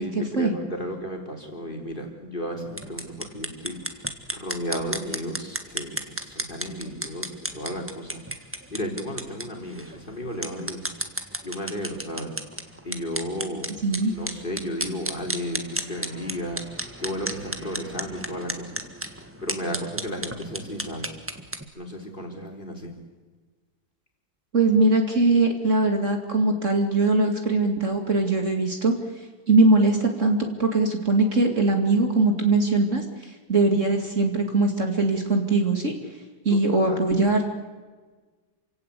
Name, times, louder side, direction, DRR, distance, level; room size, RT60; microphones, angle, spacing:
voice 1, 0.0-8.2 8.7-10.8 11.4-12.4 12.8-13.7 14.1-16.6 17.0-18.8 19.4-21.1 21.8-22.9 36.5-37.1, equal, 25° left, 2 dB, 3.7 m, -34 dB
sound 1, 2.7-21.6, right 1 dB, 5° right, 1.5 m, -34 dB
voice 2, 13.8-14.1 24.5-28.9 29.5-33.0 33.5-35.9 36.4-37.5, right 2 dB, 40° right, 3 dB, 2.5 m, -21 dB
28.0 x 17.0 x 8.3 m, 1.4 s
omnidirectional pair, 2.1 m